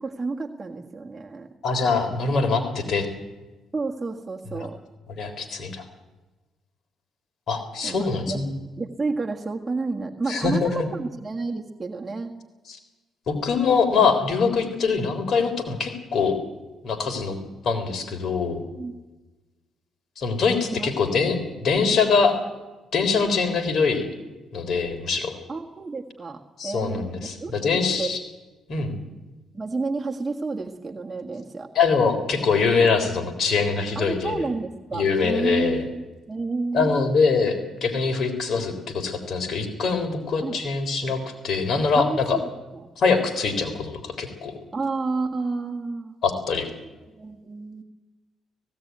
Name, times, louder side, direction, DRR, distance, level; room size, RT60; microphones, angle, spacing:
voice 1, 0.0-1.5 3.7-4.8 7.8-8.4 8.8-12.3 18.5-18.9 20.7-20.9 25.5-27.1 27.4-28.2 29.5-31.7 34.0-37.1 40.4-40.6 41.9-42.8 44.7-46.2 47.1-47.8, right 3 dB, 20° right, 0 dB, 1.7 m, -30 dB
voice 2, 1.6-3.1 4.6-4.7 5.2-5.8 7.5-8.5 10.3-10.9 13.3-16.4 16.8-17.4 17.6-18.6 20.2-22.4 22.9-24.0 24.5-25.3 26.6-28.2 28.7-29.0 31.8-34.5 34.9-35.8 36.7-42.4 43.0-44.5 46.2-46.7, left 5 dB, 60° left, 6 dB, 3.7 m, -23 dB
17.5 x 16.5 x 9.4 m, 1.2 s
cardioid pair, 90°, 0 cm